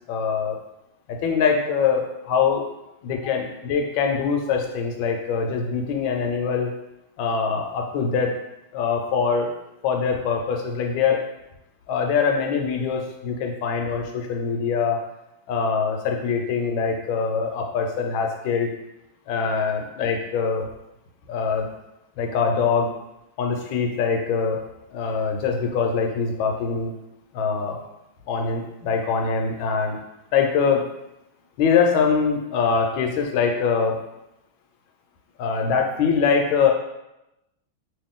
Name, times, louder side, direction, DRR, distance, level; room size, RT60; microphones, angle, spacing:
voice 1, 0.1-0.6 1.1-2.6 3.0-6.7 7.2-8.3 8.7-9.5 9.8-11.2 11.9-15.0 15.5-18.7 19.3-20.7 21.3-21.7 22.2-22.9 23.4-24.6 24.9-26.9 27.3-27.8 28.3-30.0 30.3-30.9 31.6-34.0 35.4-36.7, left 5 dB, 75° left, 2 dB, 1.3 m, -23 dB
3.0 x 2.8 x 3.6 m, 0.89 s
omnidirectional pair, 2.3 m